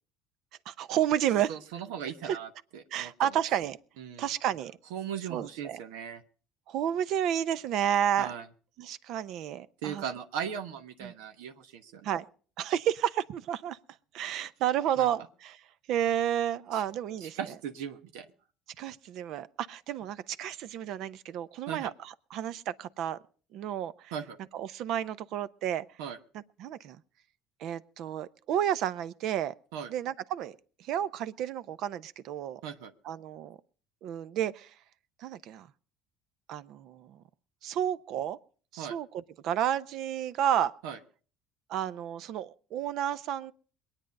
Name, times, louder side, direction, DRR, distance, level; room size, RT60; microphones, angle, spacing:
voice 1, 0.7-1.5 2.2-2.4 2.9-3.8 4.2-4.7 5.3-5.8 6.7-8.3 8.8-10.0 11.0-11.1 12.0-12.2 12.6-13.8 14.1-15.6 15.9-17.4 18.8-23.2 23.5-24.1 24.5-25.8 26.6-27.0 27.6-29.5 29.9-32.6 33.0-33.6 34.0-34.7 35.2-35.7 36.5-37.2 37.6-38.4 38.7-40.7 41.7-43.5, right 10 dB, 65° right, 0.7 m, -31 dB
voice 2, 1.5-3.3 4.0-4.3 4.9-6.2 8.2-8.5 9.8-12.1 15.0-15.1 16.7-16.8 17.2-18.3 21.7-21.9 24.1-24.4 26.0-26.2 29.7-29.9 32.6-32.9 38.8-39.0 40.8-41.0, right 8 dB, 90° right, 1.1 m, -38 dB
22.0 x 9.0 x 5.3 m
supercardioid pair, 105°, 0 cm